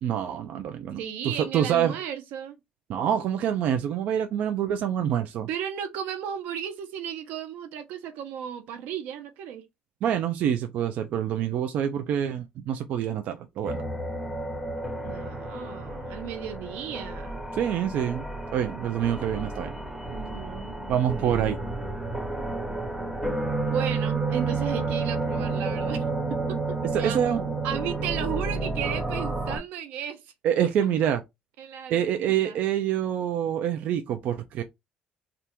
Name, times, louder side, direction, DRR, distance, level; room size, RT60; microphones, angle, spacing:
voice 1, 0.0-1.0 1.2-2.0 2.9-5.5 10.0-13.8 17.5-18.2 18.5-19.7 20.9-21.6 26.9-27.4 30.4-31.2 31.9-34.6, right 9 dB, 60° right, 0.5 m, -26 dB
voice 2, 1.0-2.6 5.5-9.6 15.0-17.4 20.1-21.4 23.7-26.0 26.5-27.2 27.6-30.3 31.6-32.6, right 9 dB, 85° right, 0.9 m, -34 dB
sound 1, 13.6-29.6, right 3 dB, 5° right, 1.6 m, -31 dB
3.4 x 2.5 x 4.4 m
cardioid pair, 155°, 3 cm